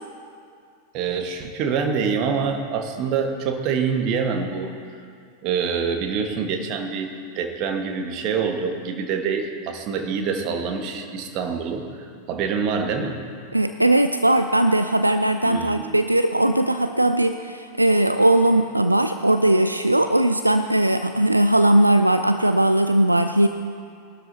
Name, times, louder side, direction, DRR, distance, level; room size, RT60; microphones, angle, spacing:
voice 1, 0.9-4.7 5.4-13.2 15.4-16.0, right 6 dB, 40° right, 4 dB, 1.5 m, -26 dB
voice 2, 13.5-23.5, right 1 dB, 85° right, 9 dB, 0.4 m, -19 dB
20.5 x 12.5 x 2.8 m, 2.3 s
figure-of-eight pair, 90°, 0 cm